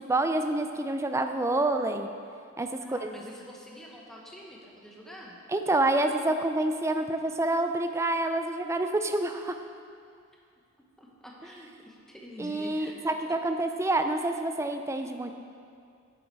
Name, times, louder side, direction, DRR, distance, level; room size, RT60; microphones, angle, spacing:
voice 1, 0.1-2.1 2.6-3.1 5.5-9.5 12.4-15.3, right 2 dB, 15° right, 7 dB, 0.4 m, -27 dB
voice 2, 2.8-5.4 11.0-13.1, equal, ahead, -3 dB, 1.1 m, -46 dB
9.4 x 7.2 x 4.6 m, 2.3 s
head